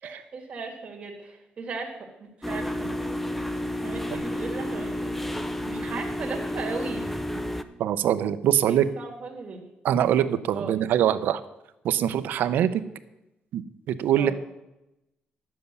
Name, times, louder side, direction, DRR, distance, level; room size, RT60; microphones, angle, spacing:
voice 1, 0.0-2.9 3.8-5.1 5.6-7.1 8.7-9.6 10.5-10.7 14.2-14.3, right 4 dB, 35° right, 1 dB, 2.2 m, -37 dB
sound 1, 2.4-7.6, left 1 dB, 5° left, 0.5 m, -31 dB
voice 2, 7.8-8.9 9.8-11.4 11.8-12.8 13.5-14.3, right 10 dB, 70° right, 12 dB, 0.7 m, -23 dB
11.0 x 7.6 x 6.8 m, 0.93 s
cardioid pair, 165°, 3 cm